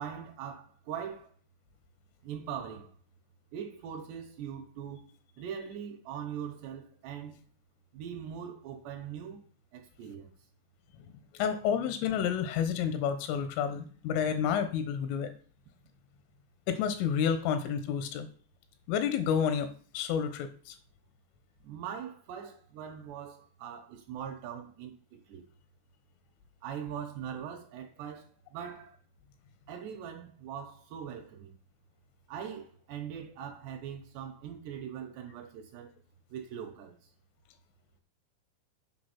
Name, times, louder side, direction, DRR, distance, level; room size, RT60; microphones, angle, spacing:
voice 1, 0.0-1.3 2.2-2.9 3.5-7.4 7.9-9.5 9.7-10.3 21.6-25.5 26.6-29.0 29.7-31.5 32.3-35.9 36.3-37.1, right 8 dB, 75° right, 2.7 m, -41 dB
voice 2, 11.1-15.3 16.7-18.3 18.9-20.8, left 8 dB, 90° left, 3.5 m, -30 dB
8.6 x 5.3 x 5.9 m
omnidirectional pair, 5.6 m